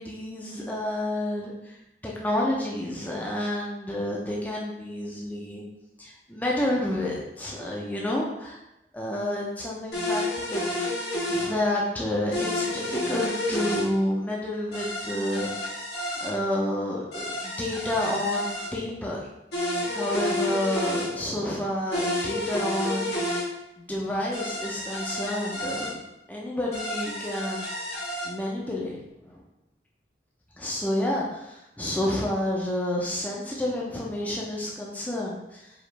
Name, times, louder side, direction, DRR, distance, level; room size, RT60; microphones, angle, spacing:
voice 1, 0.0-1.8 2.0-5.6 6.0-8.6 8.9-10.2 10.5-10.7 11.3-15.5 16.2-19.2 19.9-23.5 23.8-26.0 26.3-27.7 28.2-29.0 29.2-29.4 30.6-35.7, left 1 dB, 10° left, -4 dB, 0.5 m, -29 dB
sound 1, 9.9-11.5 12.3-13.9 14.7-16.3 17.1-18.7 19.5-21.1 21.9-23.4 24.3-25.9 26.7-28.3, left 1 dB, 70° left, 1.2 m, -30 dB
4.8 x 2.5 x 3.3 m, 0.88 s
head